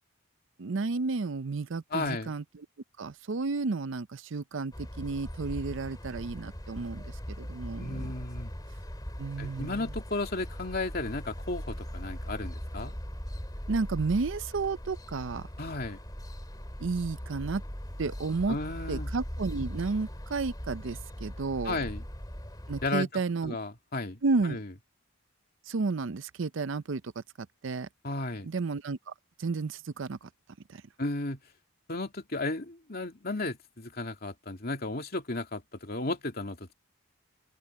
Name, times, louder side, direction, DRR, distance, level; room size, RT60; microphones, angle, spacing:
voice 1, 0.6-2.7 3.0-8.1 9.2-9.9 13.7-15.5 16.8-17.6 18.0-18.6 18.9-21.8 22.7-23.6 24.2-24.6 25.7-27.1 27.6-27.9 28.4-29.1 29.4-30.3 30.7-30.8, right 4 dB, 60° right, 0.5 m, -32 dB
voice 2, 1.9-2.3 7.8-8.5 9.4-12.9 15.6-16.0 18.5-19.1 21.6-22.0 22.8-24.2 24.5-24.7 28.0-28.5 31.0-31.4 31.9-36.7, left 2 dB, 45° left, 2.5 m, -34 dB
sound 1, 4.7-22.9, equal, 20° left, 2.9 m, -40 dB
open air
head